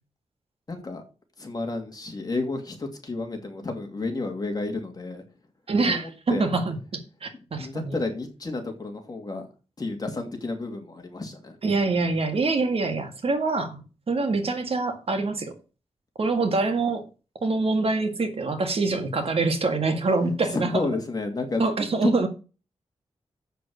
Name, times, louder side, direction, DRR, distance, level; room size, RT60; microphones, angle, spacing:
voice 1, 0.7-1.0 1.4-5.2 5.8-6.5 7.6-9.5 9.8-11.6 20.5-21.6 22.0-22.3, left 3 dB, 35° left, 2.6 m, -31 dB
voice 2, 5.7-6.8 7.2-8.0 11.6-15.5 16.2-17.0 17.4-20.7 21.6-22.3, right 3 dB, 55° right, 2.0 m, -25 dB
8.0 x 6.8 x 6.4 m
wide cardioid pair, 130°, 12 cm